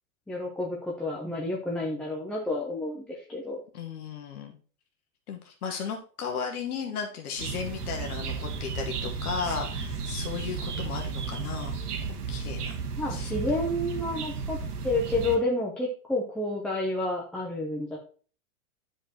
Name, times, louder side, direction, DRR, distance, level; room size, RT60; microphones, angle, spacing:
voice 1, 0.3-3.6 13.0-14.6 14.8-18.0, left 2 dB, ahead, -3 dB, 0.4 m, -30 dB
voice 2, 3.7-4.5 5.3-11.8 12.3-12.8 13.1-13.3, left 6 dB, 75° left, 2 dB, 1.3 m, -35 dB
sound 1, 7.4-15.4, right 5 dB, 80° right, 1.5 m, -33 dB
9.9 x 5.2 x 2.9 m, 0.40 s
hypercardioid pair, 130°, 45 cm